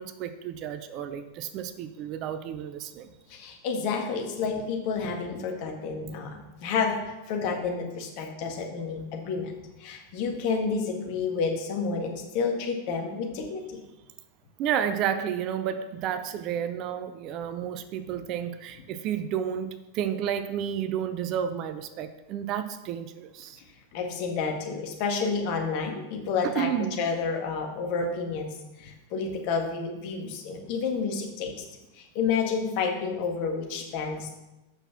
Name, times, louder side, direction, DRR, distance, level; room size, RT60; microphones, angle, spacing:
voice 1, 0.0-3.1 14.6-23.6 26.4-27.0, right 9 dB, 40° right, 11 dB, 0.6 m, -31 dB
voice 2, 3.3-9.5 9.8-13.8 23.6-23.7 23.9-31.7 31.9-34.3, left 5 dB, 45° left, 2 dB, 1.8 m, -30 dB
7.9 x 6.1 x 5.9 m, 1.0 s
figure-of-eight pair, 90°, 0 cm